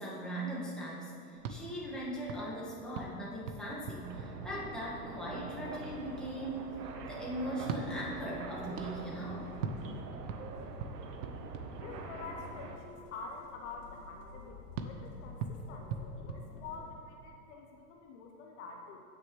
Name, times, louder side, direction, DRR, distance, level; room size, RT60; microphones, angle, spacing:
voice 1, 0.0-6.7 7.1-9.5, right 1 dB, ahead, -7 dB, 1.7 m, -39 dB
sound 1, 1.3-5.2 7.6-12.4 14.8-17.2, right 5 dB, 50° right, 0.8 m, -43 dB
sound 2, 4.0-12.8, right 4 dB, 85° right, 1.2 m, -45 dB
sound 3, 5.7-16.9, left 3 dB, 80° left, 2.0 m, -53 dB
voice 2, 11.8-19.0, left 4 dB, 50° left, 1 dB, 1.0 m, -47 dB
16.5 x 6.7 x 3.2 m, 2.6 s
hypercardioid pair, 145°, 48 cm